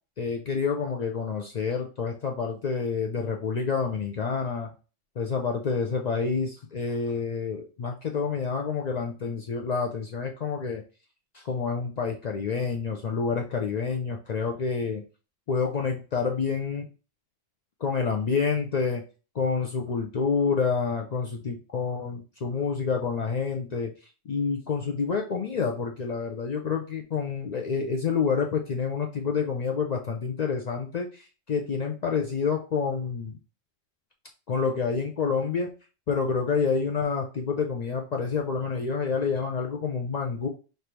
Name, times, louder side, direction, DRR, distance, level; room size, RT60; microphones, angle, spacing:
voice 1, 0.2-4.7 5.2-10.8 11.3-15.0 15.5-16.9 17.8-19.0 19.3-23.9 24.3-33.4 34.5-35.7 36.1-40.5, left 5 dB, 75° left, 2 dB, 0.3 m, -28 dB
3.3 x 2.6 x 4.4 m, 0.35 s
omnidirectional pair, 1.3 m